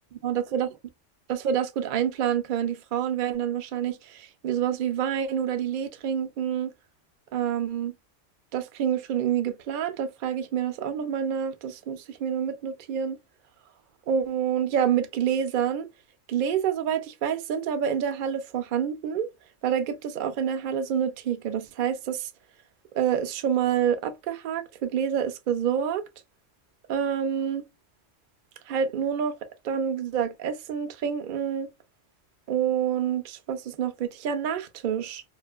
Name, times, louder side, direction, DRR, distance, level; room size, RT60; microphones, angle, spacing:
voice 1, 0.2-0.7 1.3-6.7 7.3-7.9 8.5-13.2 14.1-15.9 16.3-19.3 19.6-22.3 22.9-26.0 26.9-27.6 28.7-29.4 29.6-31.7 32.5-35.2, right 8 dB, 60° right, 0.5 m, -27 dB
2.4 x 2.4 x 2.3 m
omnidirectional pair, 1.2 m